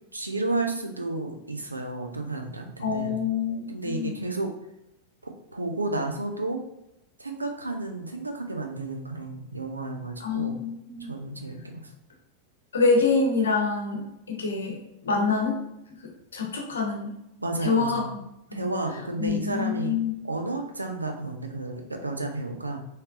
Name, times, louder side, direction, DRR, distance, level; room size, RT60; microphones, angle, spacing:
voice 1, 0.1-3.2 3.7-4.5 5.2-6.6 7.2-10.6 11.1-11.9 17.4-18.1 18.5-20.0 20.2-22.8, right 2 dB, 80° right, 3 dB, 0.4 m, -32 dB
voice 2, 2.8-4.2 10.2-11.1 12.7-15.6 16.0-17.1 17.6-18.1 19.2-20.1, left 4 dB, 70° left, 1 dB, 0.6 m, -26 dB
3.2 x 2.8 x 2.4 m, 0.85 s
figure-of-eight pair, 90°, 0 cm